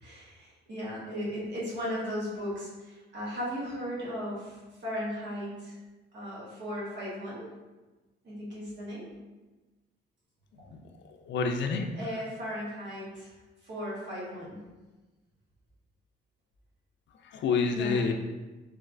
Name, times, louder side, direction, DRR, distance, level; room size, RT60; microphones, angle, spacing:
voice 1, 0.0-5.8 6.1-7.5 8.2-9.1 12.0-13.3 13.6-14.6 17.7-18.0, equal, 60° right, -6 dB, 1.4 m, -36 dB
voice 2, 11.2-11.9 17.2-18.1, left 5 dB, 65° left, 5 dB, 0.4 m, -28 dB
3.3 x 3.0 x 2.5 m, 1.2 s
cardioid pair, 90°, 20 cm